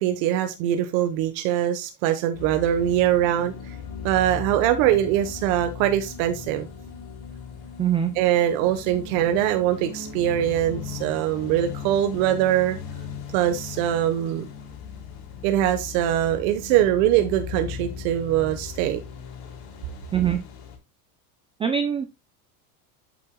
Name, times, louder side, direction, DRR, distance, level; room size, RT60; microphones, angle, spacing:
voice 1, 0.0-3.5 4.0-6.7 8.1-12.8 13.3-14.5 15.4-19.0, right 12 dB, 65° right, 1.2 m, -22 dB
sound 1, 2.3-20.8, left 6 dB, 80° left, 3.8 m, -38 dB
voice 2, 7.8-8.1 20.1-20.4 21.6-22.0, right 8 dB, 15° right, 0.3 m, -22 dB
8.5 x 7.8 x 2.2 m
supercardioid pair, 150°, 46 cm